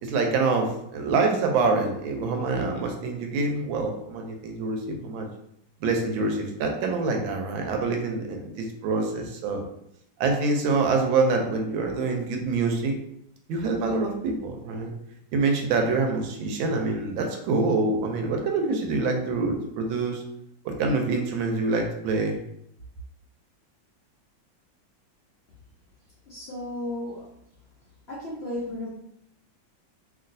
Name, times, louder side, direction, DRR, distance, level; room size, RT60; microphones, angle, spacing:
voice 1, 0.0-5.3 5.8-9.6 10.2-12.9 13.5-14.9 15.3-20.2 20.6-22.4, right 3 dB, 90° right, 3 dB, 1.4 m, -26 dB
voice 2, 26.3-27.3 28.1-28.9, left 1 dB, 75° left, -7 dB, 0.5 m, -34 dB
3.0 x 2.8 x 2.6 m, 0.77 s
omnidirectional pair, 2.1 m